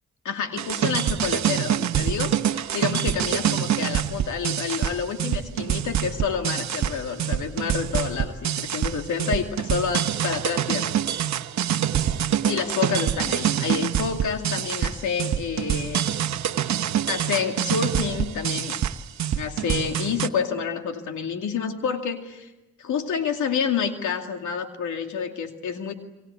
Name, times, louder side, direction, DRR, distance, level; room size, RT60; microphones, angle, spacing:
voice 1, 0.2-10.9 12.5-16.1 16.7-16.8 17.1-18.9 19.3-22.5 22.8-25.9, left 6 dB, 80° left, 5 dB, 2.5 m, -28 dB
sound 1, 0.6-20.3, right 10 dB, 70° right, 1.1 m, -25 dB
28.0 x 23.5 x 8.2 m, 1.0 s
supercardioid pair, 55°, 29 cm